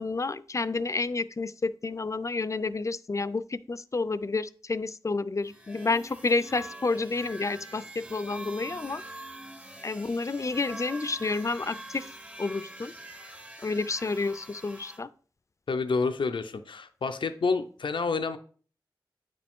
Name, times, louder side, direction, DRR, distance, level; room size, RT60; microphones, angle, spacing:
voice 1, 0.0-9.0 9.8-12.1 12.4-12.9 13.6-15.1, left 3 dB, 40° left, 15 dB, 0.4 m, -30 dB
sound 1, 5.4-15.0, right 1 dB, 15° right, 0.7 m, -44 dB
voice 2, 15.7-18.4, left 4 dB, 85° left, 8 dB, 0.5 m, -28 dB
9.1 x 5.0 x 3.6 m, 0.43 s
wide cardioid pair, 60°, 8 cm